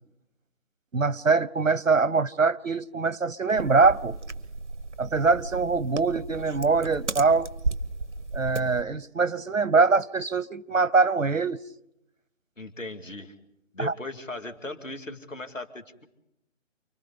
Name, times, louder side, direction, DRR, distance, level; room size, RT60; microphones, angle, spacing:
voice 1, 0.9-4.2 5.0-7.5 8.3-11.6 13.8-13.9, right 4 dB, 85° right, 0.8 m, -23 dB
sound 1, 3.5-8.8, right 3 dB, 65° right, 1.1 m, -34 dB
voice 2, 12.6-13.3 13.7-16.1, left 2 dB, 75° left, 2.6 m, -38 dB
29.5 x 24.5 x 4.1 m
figure-of-eight pair, 155°, 38 cm